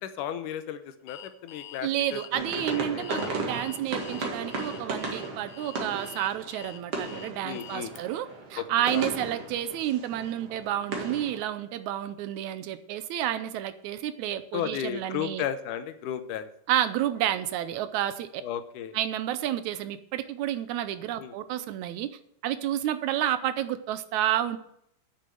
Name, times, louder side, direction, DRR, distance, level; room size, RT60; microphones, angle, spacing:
voice 1, 0.0-3.3 7.4-7.9 8.6-9.1 14.5-16.5 18.4-19.0 21.2-21.3, left 9 dB, 85° left, 11 dB, 2.4 m, -34 dB
Alarm, 1.1-8.0, left 11 dB, 70° left, 1.9 m, -46 dB
voice 2, 1.8-15.4 16.7-18.4 18.9-22.1 22.4-24.6, right 12 dB, 75° right, 12 dB, 1.9 m, -30 dB
sound 1, 2.3-11.4, right 3 dB, 50° right, 2.9 m, -36 dB
9.3 x 6.7 x 7.6 m, 0.73 s
omnidirectional pair, 3.5 m